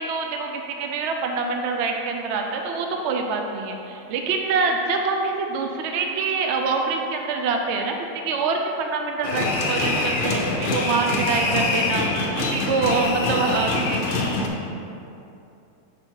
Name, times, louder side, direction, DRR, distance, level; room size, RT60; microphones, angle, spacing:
voice 1, 0.0-12.0 12.4-14.0, right 4 dB, 65° right, 3 dB, 0.7 m, -25 dB
sound 1, 9.2-14.5, left 2 dB, 50° left, 0.6 m, -24 dB
6.2 x 4.5 x 4.5 m, 2.7 s
omnidirectional pair, 1.6 m